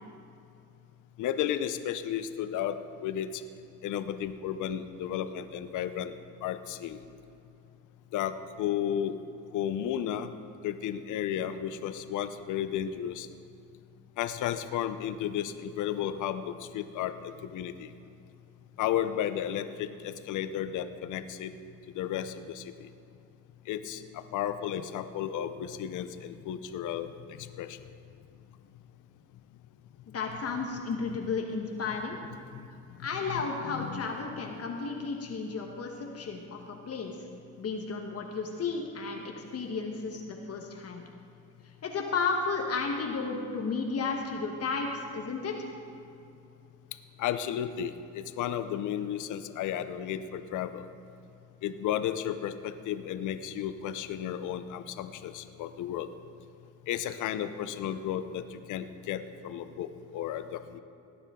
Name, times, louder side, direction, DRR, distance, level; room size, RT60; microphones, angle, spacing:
voice 1, 1.2-3.3 3.8-6.1 6.4-7.0 8.1-9.2 9.5-10.3 10.6-13.3 14.2-17.9 18.8-21.5 21.9-22.6 23.7-27.1 27.4-27.8 33.3-33.4 33.7-34.1 47.2-50.8 51.6-56.1 56.9-60.8, left 10 dB, 80° left, 11 dB, 0.7 m, -33 dB
voice 2, 30.1-32.2 33.0-37.2 37.6-41.0 41.8-45.7, left 4 dB, 50° left, 2 dB, 1.3 m, -33 dB
17.5 x 9.7 x 3.7 m, 2.5 s
cardioid pair, 90°, 30 cm